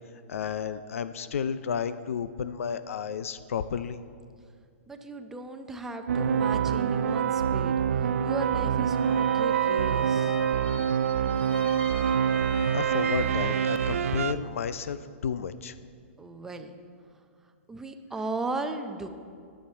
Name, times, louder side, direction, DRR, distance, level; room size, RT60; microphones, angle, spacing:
voice 1, 0.3-4.0 12.7-15.7, left 7 dB, 85° left, 13 dB, 0.5 m, -32 dB
voice 2, 4.9-10.4 16.2-16.8 17.7-19.1, right 3 dB, 5° right, 6 dB, 0.5 m, -37 dB
sound 1, 6.1-14.3, right 8 dB, 80° right, 0.5 m, -26 dB
Bowed string instrument, 8.9-14.1, left 4 dB, 60° left, 1.2 m, -43 dB
21.0 x 7.3 x 4.4 m, 2.2 s
hypercardioid pair, 160°, 7 cm